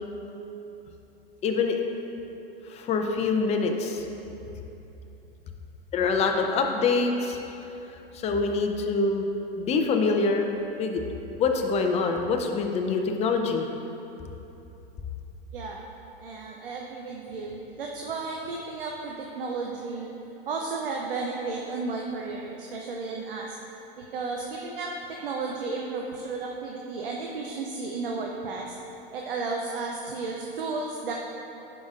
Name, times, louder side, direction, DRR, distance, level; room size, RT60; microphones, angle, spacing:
voice 1, 1.4-1.8 2.7-4.0 5.9-7.4 8.1-9.2 9.6-10.5 10.8-11.0 11.4-13.7, left 4 dB, 20° left, 3 dB, 0.5 m, -25 dB
voice 2, 16.2-20.1 20.5-23.6 24.0-28.7 29.1-31.1, right 3 dB, 70° right, 0 dB, 0.7 m, -33 dB
11.0 x 5.0 x 2.4 m, 3.0 s
figure-of-eight pair, 95°, 29 cm